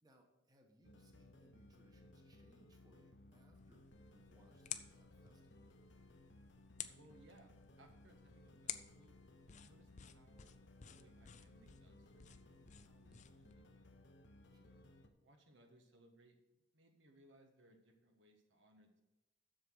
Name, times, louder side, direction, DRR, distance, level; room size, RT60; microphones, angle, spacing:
voice 1, 0.0-5.7 14.5-14.8, right 1 dB, 20° right, 2 dB, 1.2 m, -70 dB
sound 1, 0.8-15.1, left 2 dB, 70° left, 0.9 m, -62 dB
sound 2, 3.5-13.6, left 10 dB, 40° left, 0.5 m, -53 dB
voice 2, 6.9-9.2 9.6-13.9 15.2-19.0, right 1 dB, 80° right, 4 dB, 1.3 m, -68 dB
7.6 x 6.7 x 6.2 m, 0.94 s
head